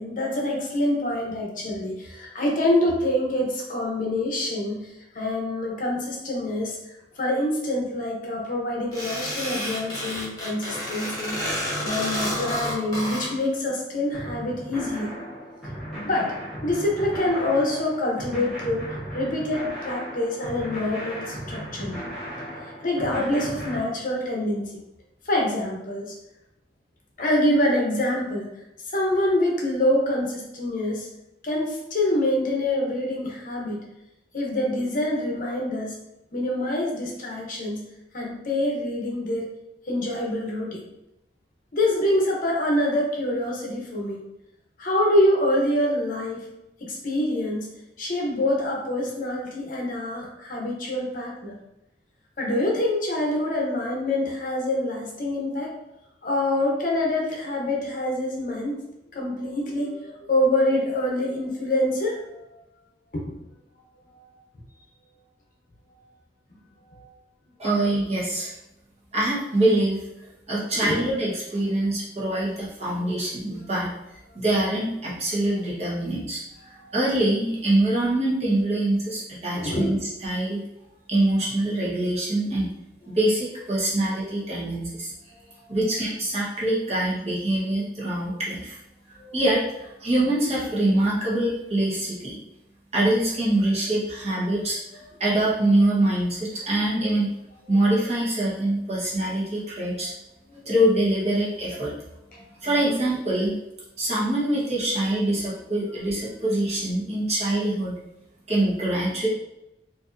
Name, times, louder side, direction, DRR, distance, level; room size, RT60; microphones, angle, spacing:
voice 1, 0.0-6.8 7.2-11.4 11.8-15.1 16.0-16.3 16.6-18.9 19.1-22.0 22.8-24.8 25.2-26.1 27.2-28.5 28.9-31.1 31.4-33.8 34.3-35.9 36.3-37.8 38.1-39.5 39.8-40.8 41.7-44.2 44.8-46.4 46.8-47.7 48.0-51.6 52.4-55.7 56.2-58.8 59.1-62.6 63.1-63.3 64.1-64.2 66.9-67.1 70.8-71.0 76.8-76.9 79.5-79.9 85.6-85.8 89.2-89.3 100.0-100.1 100.6-100.8 102.3-102.4, left 1 dB, 45° left, -2 dB, 0.8 m, -26 dB
sound 1, 8.9-13.3, equal, 20° left, 1.3 m, -30 dB
sound 2, 14.1-23.8, equal, ahead, 1.2 m, -36 dB
voice 2, 67.6-68.5 69.1-70.1 70.5-73.9 74.3-76.4 76.9-80.6 81.1-82.7 83.1-85.1 85.7-88.8 89.1-92.4 92.9-97.3 97.7-100.1 100.6-101.9 102.6-103.5 104.0-107.9 108.5-109.3, right 1 dB, 35° right, -7 dB, 1.1 m, -24 dB
4.4 x 2.7 x 2.6 m, 0.90 s
head